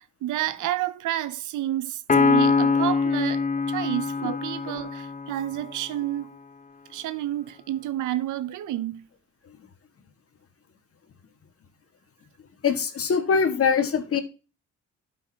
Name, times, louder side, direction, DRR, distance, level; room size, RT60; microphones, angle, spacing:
voice 1, 0.0-6.4 6.9-9.1, right 13 dB, 80° right, 0.8 m, -30 dB
Piano, 2.1-5.7, left 4 dB, 25° left, 0.8 m, -23 dB
voice 2, 12.6-14.2, left 6 dB, 50° left, 1.9 m, -23 dB
12.0 x 5.7 x 2.9 m
cardioid pair, 90°, 30 cm